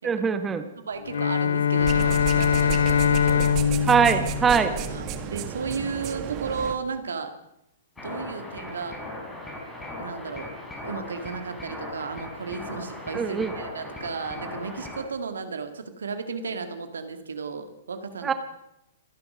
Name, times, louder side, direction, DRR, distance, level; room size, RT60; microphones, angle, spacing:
voice 1, 0.0-0.6 3.9-4.7 13.1-13.5 18.2-18.3, right 6 dB, 15° right, 9 dB, 1.0 m, -22 dB
voice 2, 0.8-3.4 4.9-7.3 8.0-9.0 10.0-10.5 10.8-18.3, right 5 dB, 70° right, 8 dB, 1.9 m, -34 dB
Bowed string instrument, 1.0-5.4, left 7 dB, 65° left, 0.9 m, -23 dB
sound 1, 1.8-6.8, right 9 dB, 35° right, 1.6 m, -33 dB
sound 2, 8.0-15.0, left 1 dB, 10° left, 5.0 m, -38 dB
26.5 x 10.5 x 5.2 m, 0.83 s
figure-of-eight pair, 115°, 0 cm